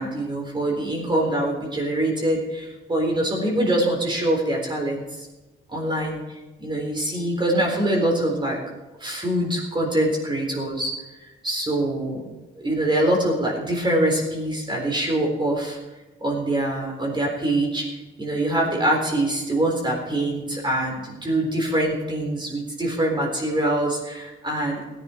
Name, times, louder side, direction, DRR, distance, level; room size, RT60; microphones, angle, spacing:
voice 1, 0.0-5.3 5.7-6.2 6.6-8.6 9.0-10.9 11.4-12.3 12.6-15.8 16.2-24.8, right 1 dB, 25° right, -1 dB, 4.0 m, -24 dB
16.0 x 11.0 x 4.5 m, 1.1 s
cardioid pair, 90°, 20 cm